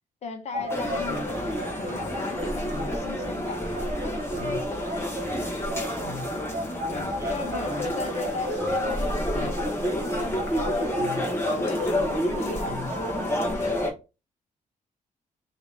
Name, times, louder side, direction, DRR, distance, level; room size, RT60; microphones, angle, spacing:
voice 1, 0.2-3.9 6.9-13.8, left 4 dB, 50° left, 1.0 m, -38 dB
sound 1, 0.5-13.5, right 1 dB, 45° right, 1.3 m, -36 dB
sound 2, 0.7-13.9, left 1 dB, 15° left, 1.1 m, -29 dB
voice 2, 4.3-5.3 7.2-7.5, right 2 dB, 20° right, 0.9 m, -45 dB
3.8 x 2.8 x 4.8 m
wide cardioid pair, 175°, 15 cm